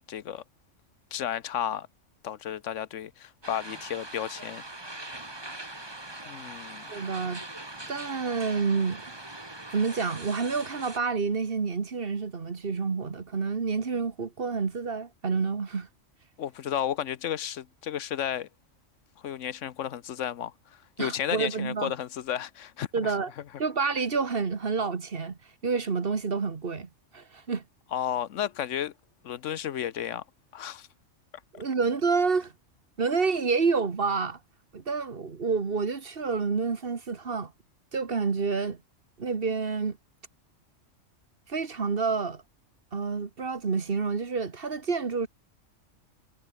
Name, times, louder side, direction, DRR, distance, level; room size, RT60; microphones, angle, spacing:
voice 1, 0.1-0.4 1.1-1.9 2.2-4.6 6.2-6.9 16.4-18.5 19.2-20.5 21.0-23.1 27.9-28.9 29.2-30.2 30.5-30.9, left 10 dB, 75° left, 1.1 m, -32 dB
sound 1, 3.4-11.0, right 2 dB, 20° right, 2.0 m, -42 dB
voice 2, 6.9-7.4 7.9-9.0 9.7-15.9 21.0-21.9 22.9-23.3 23.6-27.6 31.5-32.5 33.0-34.4 34.7-37.5 37.9-38.8 39.2-40.0 41.5-42.4 42.9-45.3, right 5 dB, 50° right, 1.6 m, -28 dB
omnidirectional pair, 1.3 m